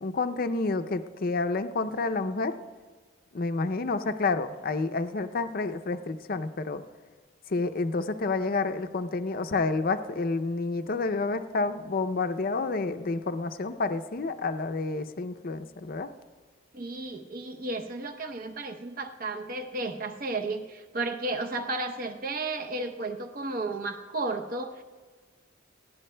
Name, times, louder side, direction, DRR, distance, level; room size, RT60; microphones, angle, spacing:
voice 1, 0.0-2.5 3.3-6.8 7.5-16.1, left 3 dB, 50° left, 10 dB, 0.5 m, -29 dB
voice 2, 16.7-24.8, right 2 dB, 45° right, 6 dB, 0.8 m, -33 dB
19.0 x 15.5 x 2.2 m, 1.4 s
head